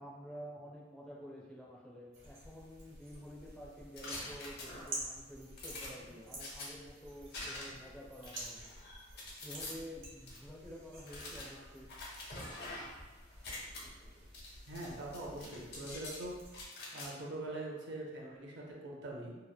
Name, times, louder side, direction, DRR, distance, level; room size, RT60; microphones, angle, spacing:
voice 1, 0.0-8.7 9.4-11.9 14.0-14.1, equal, 5° left, -5 dB, 0.5 m, -50 dB
sound 1, 2.1-16.7, right 1 dB, 80° right, 0.9 m, -51 dB
sound 2, 4.0-5.1 5.6-6.7 7.3-7.9 8.2-9.7 10.3-10.4 11.0-13.0 13.3-13.8 14.3-14.9 15.1-16.2 16.5-17.1, left 2 dB, 60° left, 0.6 m, -46 dB
voice 2, 14.7-16.4 16.9-19.4, right 1 dB, 65° right, -2 dB, 0.5 m, -43 dB
2.8 x 2.0 x 2.2 m, 1.2 s
head